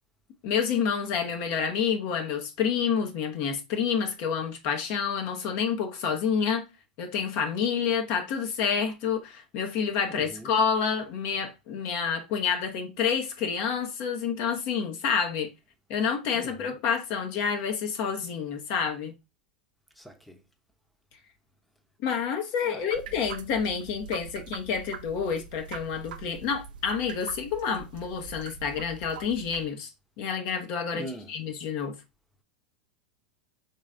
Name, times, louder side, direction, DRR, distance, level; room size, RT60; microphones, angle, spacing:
voice 1, 0.4-6.6 7.0-15.5 15.9-19.1 22.0-29.9 30.2-31.9, left 6 dB, 55° left, 0.9 m, -28 dB
voice 2, 10.1-10.5 16.3-16.8 20.0-20.4 22.6-23.2 30.9-31.3, equal, ahead, 0.8 m, -43 dB
sound 1, 22.9-29.6, right 6 dB, 70° right, 0.5 m, -43 dB
3.9 x 3.2 x 3.7 m
hypercardioid pair, 90°, 5 cm